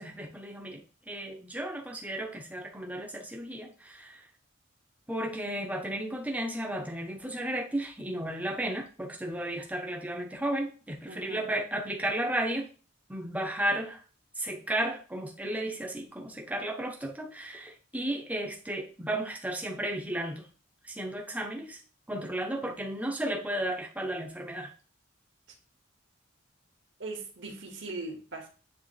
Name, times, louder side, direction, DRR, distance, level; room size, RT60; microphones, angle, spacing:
voice 1, 0.0-4.2 5.1-12.7 13.1-14.0 14.4-20.5 20.9-21.8 22.1-24.7, right 1 dB, 5° right, 1 dB, 1.0 m, -34 dB
voice 2, 11.1-11.5 27.0-28.5, right 3 dB, 60° right, 0 dB, 2.1 m, -40 dB
9.5 x 3.3 x 3.4 m, 0.37 s
head